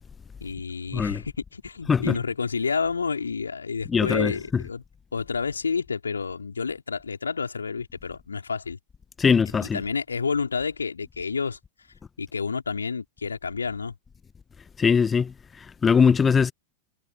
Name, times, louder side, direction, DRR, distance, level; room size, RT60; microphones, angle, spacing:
voice 1, 0.4-4.8 5.1-8.8 9.7-11.6 12.2-13.9, left 5 dB, 75° left, 3.9 m, -29 dB
voice 2, 0.9-1.2 1.9-2.2 3.9-4.6 9.2-9.8 14.8-16.5, left 6 dB, 15° left, 1.1 m, -21 dB
figure-of-eight pair, 90°, 0 cm